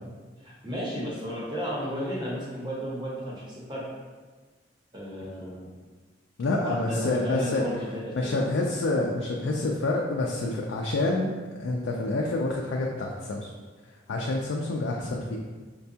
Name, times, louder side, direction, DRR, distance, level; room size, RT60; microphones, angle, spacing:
voice 1, 0.4-3.9 4.9-5.7 6.5-8.4, equal, 25° right, -6 dB, 0.8 m, -33 dB
voice 2, 6.4-7.6 8.1-11.3 11.6-13.5 14.1-15.4, left 2 dB, 85° left, -1 dB, 0.4 m, -27 dB
5.1 x 2.2 x 2.7 m, 1.4 s
head